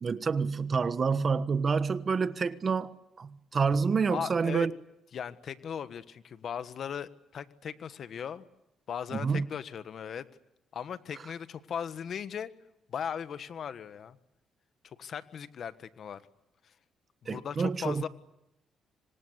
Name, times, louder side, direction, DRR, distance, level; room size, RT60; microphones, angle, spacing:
voice 1, 0.0-4.7 9.1-9.5 17.3-18.1, right 5 dB, 40° right, 1.3 m, -28 dB
voice 2, 4.1-4.7 5.1-8.4 8.9-10.3 10.7-12.5 12.9-14.2 14.8-16.2 17.2-18.1, left 8 dB, 60° left, 1.4 m, -38 dB
26.0 x 25.5 x 8.1 m
cardioid pair, 90°, 0 cm